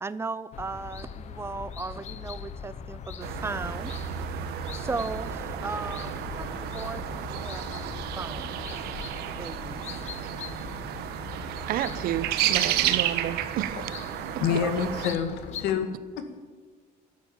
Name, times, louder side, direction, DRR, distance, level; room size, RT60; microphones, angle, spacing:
voice 1, 0.0-3.9 4.7-8.6 9.3-9.8 14.6-14.7, right 3 dB, 15° right, 0.4 m, -36 dB
sound 1, 0.5-15.7, left 7 dB, 45° left, 0.9 m, -41 dB
sound 2, 3.2-15.2, right 11 dB, 85° right, 1.2 m, -32 dB
voice 2, 11.7-13.8, right 12 dB, 65° right, 0.9 m, -30 dB
voice 3, 14.4-16.4, left 8 dB, 85° left, 2.1 m, -28 dB
13.0 x 10.5 x 8.8 m
cardioid pair, 165°, 16 cm